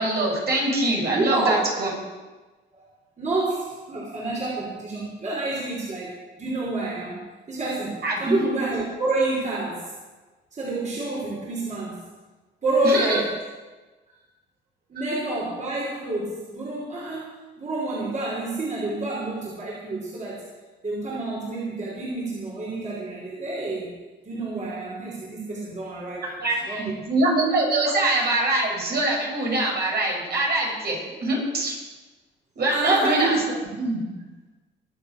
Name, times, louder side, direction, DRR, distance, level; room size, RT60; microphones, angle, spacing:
voice 1, 0.0-1.9 8.0-8.4 12.8-13.2 26.2-31.8 32.6-33.4 33.8-34.0, right 2 dB, 55° right, -2 dB, 6.5 m, -24 dB
voice 2, 1.1-1.6 2.7-2.8 3.2-7.2 7.5-9.9 10.5-12.0 12.6-13.3 14.9-20.4 20.8-23.9 24.2-26.3 26.7-27.0 32.7-33.4, right 2 dB, 35° right, -5 dB, 5.3 m, -28 dB
23.0 x 8.2 x 6.7 m, 1.2 s
cardioid pair, 90°, 20 cm